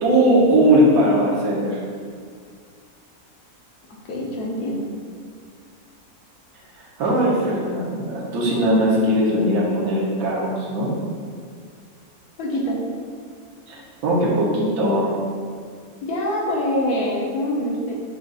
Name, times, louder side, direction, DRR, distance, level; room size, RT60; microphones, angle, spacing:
voice 1, 0.0-1.8 6.8-10.9 13.7-15.1, right 1 dB, 80° right, -6 dB, 1.4 m, -19 dB
voice 2, 4.1-4.8 12.4-12.8 16.0-17.9, left 1 dB, 85° left, -2 dB, 1.3 m, -24 dB
5.0 x 2.4 x 3.8 m, 2.1 s
omnidirectional pair, 1.6 m